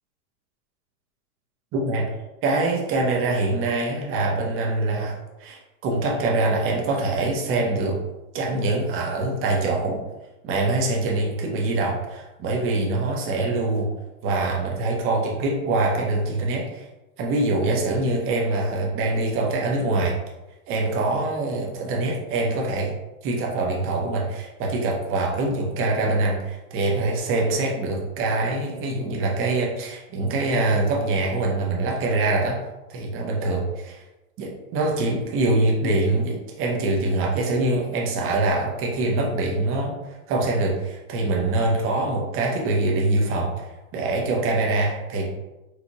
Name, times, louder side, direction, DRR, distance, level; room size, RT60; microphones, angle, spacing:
voice 1, 1.7-2.1 2.4-8.0 8.3-10.0 10.4-13.9 14.2-16.9 17.2-20.1 20.7-22.9 23.2-32.6 32.9-34.0 34.4-39.9 40.3-43.5 43.9-45.3, right 2 dB, 30° right, -1 dB, 0.9 m, -24 dB
4.5 x 2.5 x 3.0 m, 1.0 s
hypercardioid pair, 120°, 44 cm